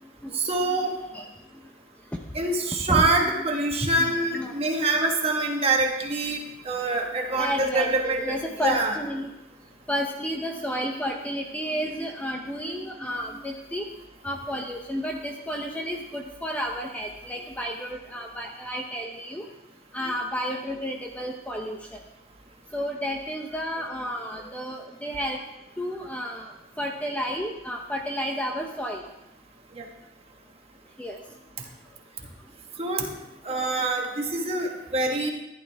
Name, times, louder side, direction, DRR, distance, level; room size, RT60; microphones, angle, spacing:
voice 1, 0.3-1.0 2.3-6.4 6.6-8.9 29.8-29.9 32.8-33.1 33.4-35.3, right 2 dB, 30° right, 2 dB, 1.5 m, -25 dB
voice 2, 3.8-4.5 7.3-9.3 9.9-13.9 14.2-19.4 19.9-22.0 22.7-25.4 25.8-26.5 26.8-29.0 31.0-31.2 33.5-33.7, equal, 5° left, 1 dB, 0.7 m, -31 dB
14.5 x 11.0 x 3.4 m, 0.93 s
head